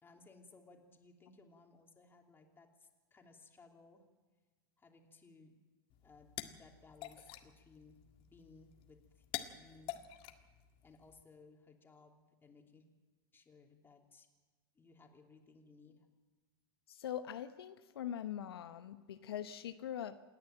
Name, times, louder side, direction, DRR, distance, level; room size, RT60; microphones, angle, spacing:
voice 1, 0.0-4.1 4.8-5.6 6.0-8.0 8.3-9.2 9.5-10.0 10.8-12.9 13.3-14.3 14.7-16.1, left 3 dB, 15° left, 3.1 m, -61 dB
sound 1, 5.9-11.2, left 13 dB, 45° left, 1.8 m, -49 dB
voice 2, 16.9-20.2, left 10 dB, 75° left, 0.9 m, -42 dB
28.0 x 10.5 x 9.0 m
hypercardioid pair, 100°, 13 cm